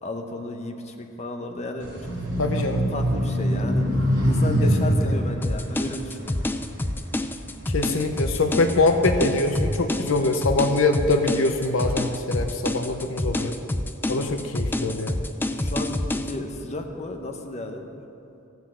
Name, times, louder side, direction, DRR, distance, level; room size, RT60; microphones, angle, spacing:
voice 1, 0.0-2.2 2.5-3.8 4.2-6.4 14.0-14.4 15.5-18.0, left 1 dB, 30° left, 4 dB, 0.8 m, -34 dB
sound 1, 1.8-7.4 7.9-9.8, equal, 55° right, 3.4 m, -25 dB
voice 2, 2.4-2.9 4.6-4.9 7.7-13.6 14.1-15.2, left 2 dB, 70° left, 6 dB, 0.6 m, -23 dB
sound 2, 5.4-16.3, left 1 dB, 10° left, 0.3 m, -28 dB
14.5 x 6.2 x 7.7 m, 2.9 s
head